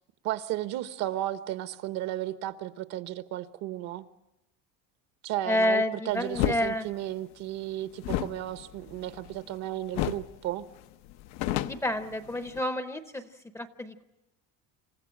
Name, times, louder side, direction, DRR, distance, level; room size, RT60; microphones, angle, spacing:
voice 1, 0.2-4.1 5.2-10.7, right 14 dB, 60° right, 11 dB, 1.1 m, -34 dB
voice 2, 5.5-6.9 11.6-13.3 13.5-14.0, left 1 dB, 10° left, 10 dB, 0.7 m, -29 dB
sound 1, 6.3-6.6 8.0-9.6 9.9-10.3 10.6-10.7 11.1-12.6, left 13 dB, 75° left, 0.8 m, -31 dB
27.5 x 15.0 x 8.8 m, 0.97 s
cardioid pair, 165°, 30 cm